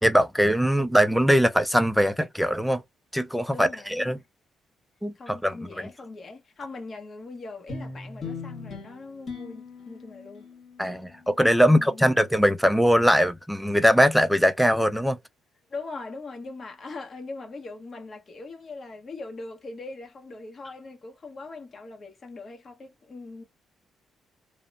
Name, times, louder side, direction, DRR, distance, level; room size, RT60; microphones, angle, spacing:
voice 1, 0.0-2.8 3.1-4.2 5.0-5.6 10.8-15.2, equal, ahead, 0.3 m, -21 dB
voice 2, 3.5-4.2 5.1-10.5 11.6-12.2 15.7-23.4, left 3 dB, 40° left, 1.0 m, -41 dB
sound 1, 7.7-12.3, left 4 dB, 55° left, 1.7 m, -41 dB
2.9 x 2.0 x 2.4 m
cardioid pair, 90°, 0 cm